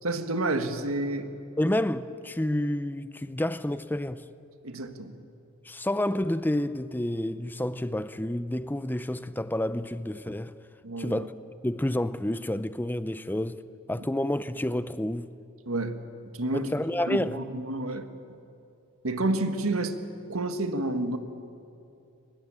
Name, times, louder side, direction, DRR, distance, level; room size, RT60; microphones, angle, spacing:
voice 1, 0.0-1.3 4.6-5.1 10.8-11.3 15.6-16.0 16.3-16.7 17.0-18.1 19.0-20.0 20.3-21.2, right 2 dB, 80° right, 1.7 m, -29 dB
voice 2, 1.6-4.2 5.7-10.5 11.0-11.3 11.6-13.6 13.9-15.3 16.5-17.4, left 1 dB, 10° left, 0.5 m, -29 dB
24.0 x 20.5 x 8.9 m
head